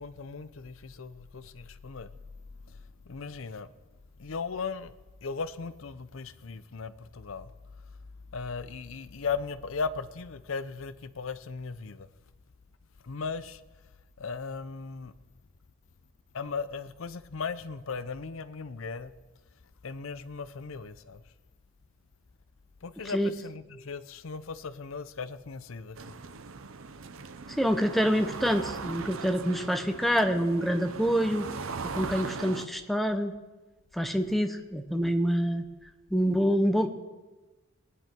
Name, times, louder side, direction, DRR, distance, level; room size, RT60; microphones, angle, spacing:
voice 1, 0.0-2.1 2.7-2.8 3.1-3.7 4.2-4.9 5.2-7.5 8.3-12.1 13.0-13.6 14.2-15.1 16.3-19.1 19.8-21.2 22.8-26.0, left 5 dB, 65° left, 0.6 m, -37 dB
sound 1, 26.0-32.7, right 4 dB, 70° right, 0.7 m, -39 dB
voice 2, 27.6-31.5 31.9-33.3 33.9-35.7 36.1-36.9, equal, ahead, 0.9 m, -26 dB
20.0 x 9.7 x 4.5 m
head